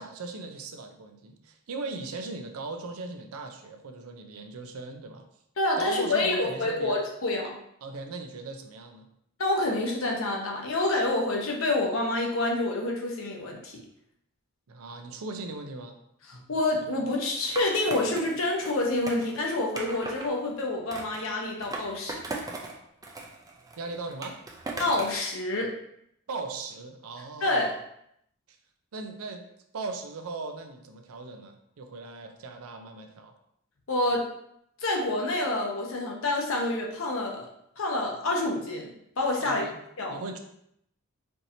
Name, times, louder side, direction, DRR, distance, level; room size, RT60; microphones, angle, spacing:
voice 1, 0.0-5.2 5.8-7.0 7.8-9.1 14.7-16.0 23.8-24.4 26.3-27.8 28.5-28.6 28.9-29.5 29.7-33.3 39.4-39.8 40.1-40.4, right 3 dB, 80° right, 5 dB, 0.5 m, -38 dB
voice 2, 5.6-7.6 9.4-13.8 16.5-22.2 24.8-25.7 27.4-27.7 33.9-34.2 34.8-37.5 37.8-38.9 39.2-39.7 40.0-40.2, left 2 dB, 65° left, 0 dB, 0.8 m, -27 dB
Skateboard, 17.6-20.3 20.9-22.7 23.0-25.2, right 2 dB, 15° right, 0.4 m, -38 dB
4.5 x 2.8 x 2.7 m, 0.74 s
head